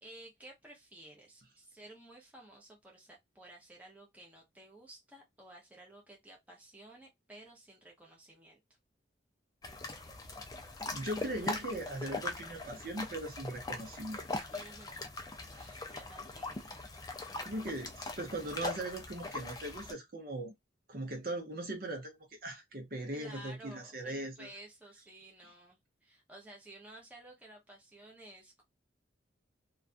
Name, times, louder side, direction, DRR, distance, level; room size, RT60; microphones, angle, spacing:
voice 1, 0.0-8.6 14.5-15.1 15.9-16.7 23.1-28.6, right 1 dB, 10° right, 0.7 m, -54 dB
sound 1, 9.6-19.9, left 2 dB, 20° left, 0.4 m, -41 dB
voice 2, 10.9-14.5 15.5-15.8 17.4-20.5 20.9-22.2 22.4-24.5, right 1 dB, 50° right, 0.7 m, -39 dB
2.4 x 2.3 x 2.4 m
head